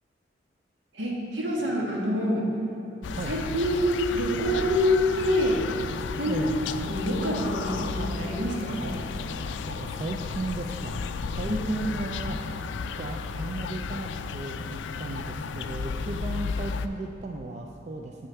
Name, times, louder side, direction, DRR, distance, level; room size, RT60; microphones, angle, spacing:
voice 1, 0.9-2.5 3.2-5.6 6.2-6.4 6.8-9.0 11.4-11.6, equal, 80° right, -3 dB, 1.6 m, -26 dB
sound 1, 3.0-16.9, left 5 dB, 85° left, 0.3 m, -33 dB
voice 2, 9.7-11.0 11.4-12.5 13.0-18.3, right 2 dB, 40° right, 2 dB, 0.4 m, -35 dB
8.0 x 6.4 x 4.5 m, 2.8 s
head